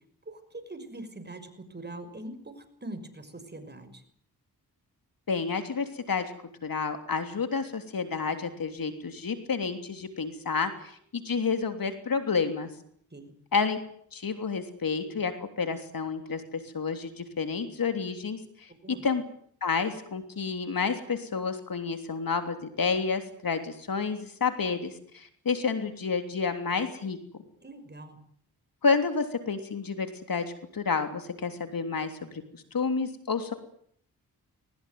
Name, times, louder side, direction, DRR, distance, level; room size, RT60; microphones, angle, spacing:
voice 1, 0.3-4.0 13.1-13.3 18.7-19.0 27.6-28.2, right 2 dB, 25° right, 8 dB, 6.0 m, -43 dB
voice 2, 5.3-6.3 6.6-12.7 13.5-13.8 14.1-15.3 15.6-18.7 19.0-19.2 19.6-27.2 28.8-30.4 30.7-33.5, left 5 dB, 60° left, 7 dB, 3.3 m, -30 dB
21.0 x 20.0 x 9.5 m, 0.64 s
cardioid pair, 60°, 39 cm